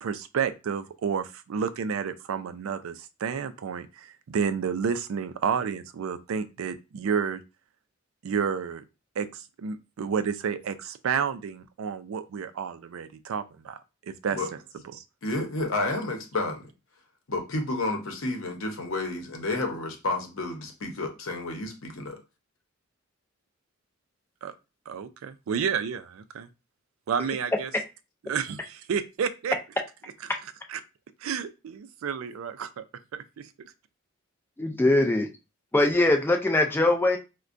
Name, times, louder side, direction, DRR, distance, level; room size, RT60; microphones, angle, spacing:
voice 1, 0.0-7.4 8.2-8.8 9.2-14.6 14.9-15.0 24.4-24.5 24.9-26.5 27.1-27.7 28.3-29.6 30.2-30.3 30.7-30.8 31.2-32.8 33.1-33.7, right 6 dB, 80° right, 11 dB, 0.4 m, -31 dB
voice 2, 15.2-16.6 17.3-22.2, left 2 dB, 70° left, 3 dB, 0.8 m, -30 dB
voice 3, 34.6-35.3 35.7-37.2, left 2 dB, 10° left, 4 dB, 0.4 m, -22 dB
4.4 x 2.2 x 2.5 m, 0.28 s
head